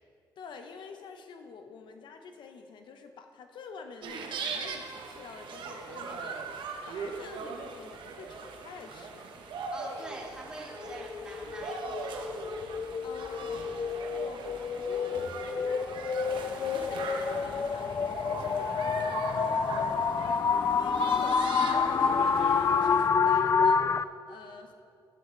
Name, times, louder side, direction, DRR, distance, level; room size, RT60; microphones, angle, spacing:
voice 1, 0.4-9.3 13.0-13.6 14.2-15.9 16.4-18.0 18.2-20.2 20.8-23.8 24.3-24.7, left 5 dB, 75° left, 6 dB, 0.8 m, -47 dB
sound 1, 4.0-23.1, right 5 dB, 75° right, 1.1 m, -40 dB
voice 2, 9.7-12.4, right 1 dB, 10° right, -5 dB, 2.9 m, -44 dB
sound 2, 10.8-24.0, left 6 dB, 35° left, 0.3 m, -28 dB
11.5 x 10.5 x 3.9 m, 2.3 s
cardioid pair, 100°, 8 cm